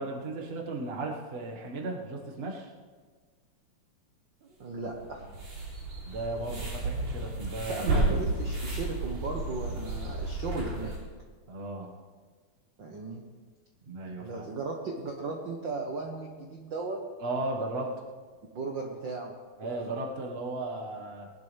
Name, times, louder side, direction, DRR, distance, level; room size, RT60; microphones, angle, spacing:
voice 1, 0.0-2.7 6.0-7.9 11.5-11.9 13.8-14.5 17.2-17.9 19.6-21.3, right 2 dB, 45° right, 0 dB, 0.7 m, -35 dB
voice 2, 4.4-5.3 7.7-11.0 12.8-13.2 14.2-17.0 18.5-19.3 19.9-20.0, right 3 dB, 65° right, 1 dB, 1.1 m, -36 dB
sound 1, 4.8-11.0, right 2 dB, 80° right, 5.4 m, -32 dB
20.5 x 11.5 x 3.4 m, 1.4 s
omnidirectional pair, 3.7 m